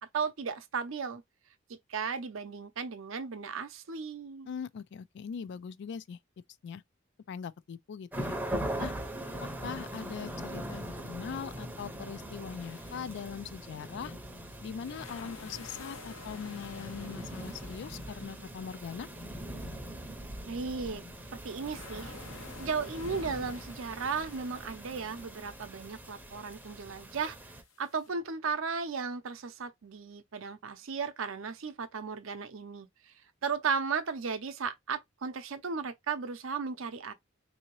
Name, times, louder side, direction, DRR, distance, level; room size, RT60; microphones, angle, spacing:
voice 1, 0.0-1.2 1.9-4.5 20.5-21.0 21.3-22.1 22.6-27.4 27.8-33.1 33.4-37.1, right 5 dB, 75° right, 0.6 m, -35 dB
voice 2, 4.5-6.2 6.6-6.8 7.3-8.4 8.8-8.9 9.6-14.1 14.6-19.1, left 7 dB, 60° left, 0.3 m, -41 dB
sound 1, 8.1-27.6, right 1 dB, 10° right, 0.6 m, -41 dB
sound 2, 12.6-28.1, left 4 dB, 85° left, 0.9 m, -53 dB
3.7 x 2.7 x 3.0 m
head